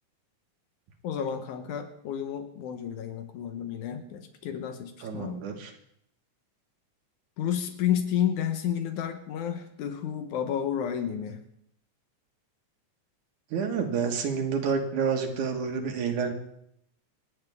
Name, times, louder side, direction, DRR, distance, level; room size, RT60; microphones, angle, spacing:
voice 1, 1.0-5.4 7.4-11.4, left 9 dB, 80° left, 7 dB, 2.4 m, -31 dB
voice 2, 5.0-5.7 13.5-16.3, right 6 dB, 85° right, 3 dB, 3.0 m, -29 dB
27.5 x 9.5 x 3.5 m, 0.71 s
omnidirectional pair, 3.4 m